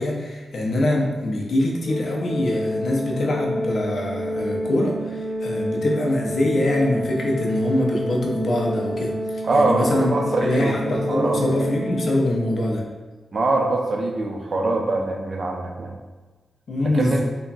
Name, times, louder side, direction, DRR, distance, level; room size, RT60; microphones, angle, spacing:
voice 1, 0.0-10.1 10.4-12.8 16.7-17.2, left 1 dB, 55° left, -1 dB, 0.5 m, -24 dB
Organ, 1.8-12.7, equal, 10° right, 1.2 m, -28 dB
voice 2, 9.4-11.4 13.3-16.0 16.8-17.2, right 2 dB, 40° right, 2 dB, 0.3 m, -23 dB
3.3 x 2.0 x 2.5 m, 1.3 s
wide cardioid pair, 150°, 0 cm